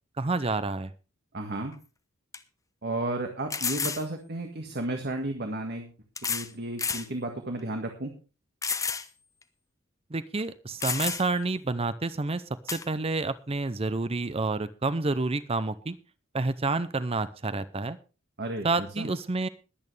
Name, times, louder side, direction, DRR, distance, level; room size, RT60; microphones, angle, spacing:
voice 1, 0.2-0.9 10.1-12.4 12.7-16.0 16.3-18.0 18.6-19.5, right 3 dB, 30° right, 14 dB, 0.6 m, -29 dB
voice 2, 1.3-1.7 2.8-5.9 6.2-8.1 18.4-19.1, right 2 dB, 50° right, 4 dB, 1.8 m, -33 dB
sound 1, 1.7-1.8 2.3-2.4 3.5-4.0 5.2-5.3 6.2-6.5 6.8-7.1 7.6-7.7 8.6-9.1 9.4-9.5 10.4-10.5 10.8-11.4 12.7-12.9, left 5 dB, 15° left, 0.9 m, -30 dB
21.5 x 8.9 x 3.4 m, 0.32 s
head